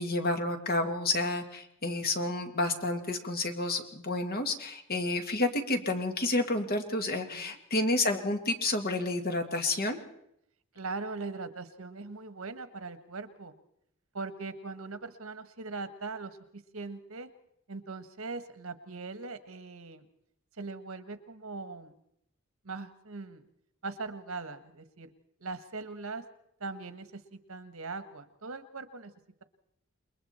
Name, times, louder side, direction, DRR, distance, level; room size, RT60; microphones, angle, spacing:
voice 1, 0.0-10.0, left 2 dB, 45° left, 5 dB, 2.1 m, -30 dB
voice 2, 10.7-13.5 14.1-17.3 17.7-20.0 20.6-22.0 22.6-23.4 23.8-25.1 25.4-26.2 26.6-29.1, right 3 dB, 80° right, 10 dB, 1.5 m, -40 dB
28.0 x 21.5 x 4.4 m, 0.74 s
head